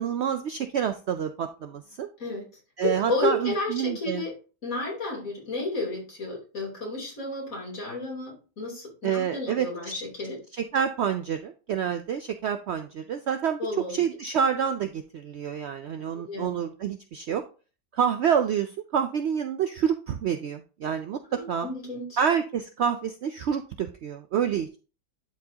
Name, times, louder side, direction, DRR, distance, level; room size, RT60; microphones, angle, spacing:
voice 1, 0.0-2.1 2.8-4.2 9.0-9.9 10.5-13.6 13.9-17.4 17.9-21.2 21.5-21.7 22.2-24.8, right 8 dB, 70° right, 8 dB, 0.6 m, -28 dB
voice 2, 2.8-4.4 4.6-10.4 13.6-14.0 16.1-16.5 21.3-22.2, left 2 dB, 60° left, -3 dB, 3.6 m, -32 dB
11.5 x 4.6 x 2.8 m, 0.36 s
omnidirectional pair, 1.6 m